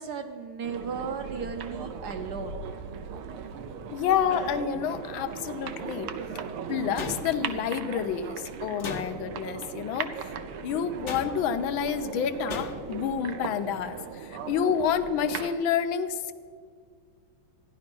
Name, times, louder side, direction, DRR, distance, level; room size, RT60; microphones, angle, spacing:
voice 1, 0.0-2.6, right 6 dB, 65° right, 6 dB, 1.1 m, -35 dB
sound 1, 0.6-15.5, right 6 dB, 90° right, 1.7 m, -38 dB
voice 2, 3.9-6.1 6.7-10.1 10.6-16.3, left 8 dB, 70° left, 10 dB, 1.4 m, -29 dB
sound 2, 7.0-7.7 8.8-9.5 11.1-11.6 12.5-13.0, left 4 dB, 50° left, 0.9 m, -37 dB
14.0 x 10.5 x 6.0 m, 2.2 s
omnidirectional pair, 2.4 m